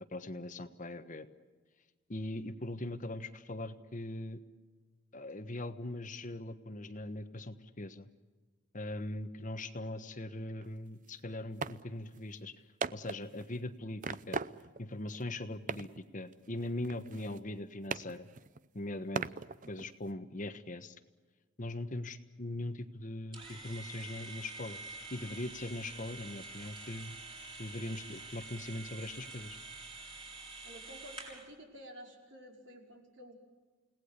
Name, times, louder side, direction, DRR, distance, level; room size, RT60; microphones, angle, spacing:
voice 1, 0.1-1.3 2.1-4.4 5.1-8.1 8.7-12.5 12.9-14.4 14.8-15.9 16.1-18.3 18.7-19.3 19.7-20.9 21.6-24.8 25.1-27.2 27.6-29.6, left 1 dB, 40° left, 10 dB, 1.3 m, -40 dB
sound 1, 10.6-10.7 11.1-11.2 11.6-11.8 12.1-12.2 12.8-13.6 14.0-14.9 15.1-15.2 15.7-16.1 16.3-17.6 17.9-18.7 19.2-20.1, right 5 dB, 40° right, 0.7 m, -40 dB
sound 2, 23.3-31.5, right 3 dB, 25° right, 5.1 m, -47 dB
voice 2, 30.6-33.3, equal, 70° right, 2 dB, 5.2 m, -51 dB
30.0 x 18.5 x 8.3 m, 1.3 s
head